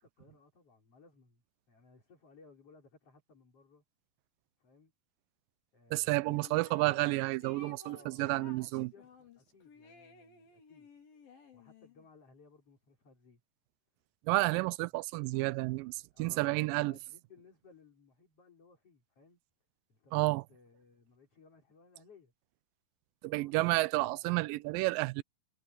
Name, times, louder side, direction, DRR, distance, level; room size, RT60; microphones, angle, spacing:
voice 1, 0.0-3.8 4.6-4.9 5.7-6.5 7.8-10.9 11.5-13.4 14.9-15.0 16.1-19.4 19.9-22.3 23.2-24.3, left 4 dB, 40° left, 5.5 m, -61 dB
voice 2, 5.9-8.9 14.3-16.9 20.1-20.4 23.2-25.2, right 21 dB, 85° right, 2.2 m, -31 dB
sound 1, 6.3-7.1 7.4-12.1, left 4 dB, 85° left, 6.3 m, -56 dB
omnidirectional pair, 4.0 m